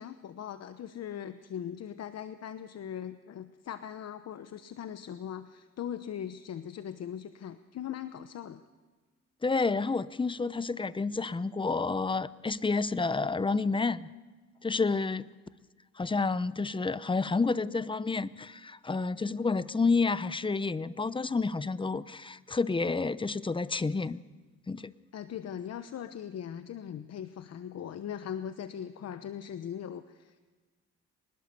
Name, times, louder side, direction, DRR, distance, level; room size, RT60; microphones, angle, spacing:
voice 1, 0.0-8.6 25.1-30.4, left 9 dB, 55° left, 11 dB, 1.0 m, -40 dB
voice 2, 9.4-14.1 14.6-15.3 16.0-24.2 24.7-24.9, left 4 dB, 15° left, 16 dB, 0.8 m, -29 dB
25.0 x 20.0 x 6.9 m, 1.4 s
cardioid pair, 90°, 30 cm